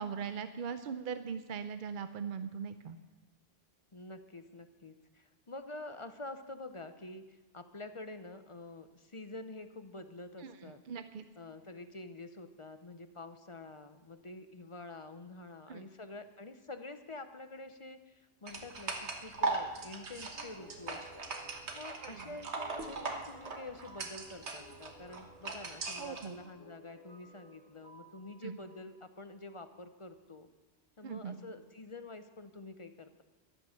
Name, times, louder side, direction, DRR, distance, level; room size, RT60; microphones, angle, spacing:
voice 1, 0.0-3.0 10.4-10.6 10.9-11.2 15.7-15.8 22.0-22.2 26.0-26.4 28.4-28.6 31.0-31.4, right 6 dB, 55° right, 10 dB, 0.7 m, -40 dB
voice 2, 3.9-10.8 11.4-21.3 21.5-30.5 31.0-33.2, left 2 dB, 35° left, 9 dB, 0.7 m, -47 dB
sound 1, 18.5-26.3, right 3 dB, 85° right, 1.6 m, -39 dB
sound 2, 20.3-29.6, right 1 dB, 60° left, 2.0 m, -58 dB
14.0 x 12.0 x 6.4 m, 1.2 s
omnidirectional pair, 1.1 m